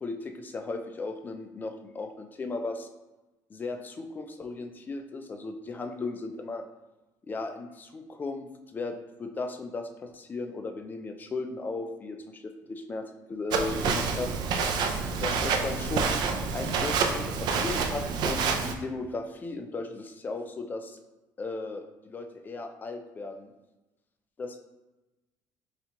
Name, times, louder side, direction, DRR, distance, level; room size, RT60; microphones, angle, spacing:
voice 1, 0.0-2.9 3.5-6.6 7.2-14.3 15.2-16.2 16.5-21.0 21.4-23.5 24.4-24.6, left 3 dB, 25° left, 6 dB, 0.4 m, -36 dB
Walk footsteps, 13.5-18.7, right 5 dB, 70° right, 0.4 m, -28 dB
4.1 x 3.3 x 2.9 m, 1.0 s
cardioid pair, 150°, 8 cm